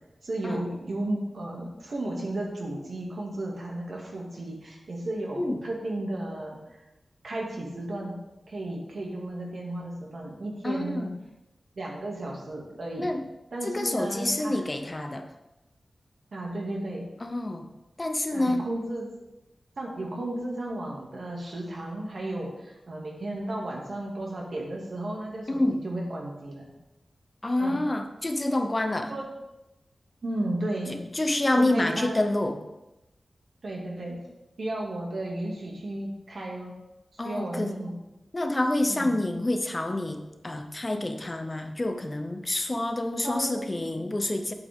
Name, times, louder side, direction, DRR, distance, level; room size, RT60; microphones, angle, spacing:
voice 1, 0.2-6.8 7.2-8.2 8.5-11.1 11.8-13.1 13.5-14.6 14.9-15.1 16.3-17.1 18.3-19.1 19.8-26.6 27.6-27.8 29.1-29.3 30.2-31.0 31.6-32.3 33.6-34.2 34.6-36.7 37.1-38.0 38.9-39.1 43.2-43.9, right 1 dB, 65° right, -2 dB, 2.2 m, -34 dB
voice 2, 10.6-11.1 13.0-13.2 13.6-15.3 17.2-17.7 18.0-18.7 25.5-25.8 27.4-29.1 30.9-32.6 37.2-37.7 38.3-44.5, left 1 dB, 25° left, 6 dB, 0.7 m, -28 dB
8.4 x 7.9 x 3.6 m, 0.96 s
wide cardioid pair, 105°, 0 cm